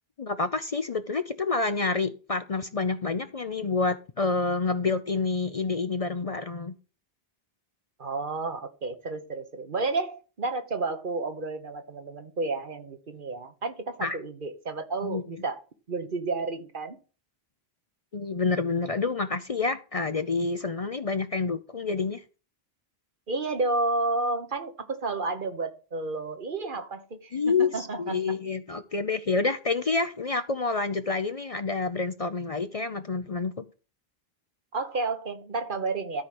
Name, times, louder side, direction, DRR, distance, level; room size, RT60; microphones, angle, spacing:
voice 1, 0.2-6.7 14.0-14.2 15.0-15.2 18.1-22.2 27.3-33.6, left 4 dB, 40° left, 10 dB, 0.6 m, -28 dB
voice 2, 8.0-17.0 23.3-28.4 34.7-36.2, right 3 dB, 55° right, 8 dB, 1.3 m, -31 dB
13.0 x 4.9 x 5.9 m, 0.35 s
omnidirectional pair, 1.0 m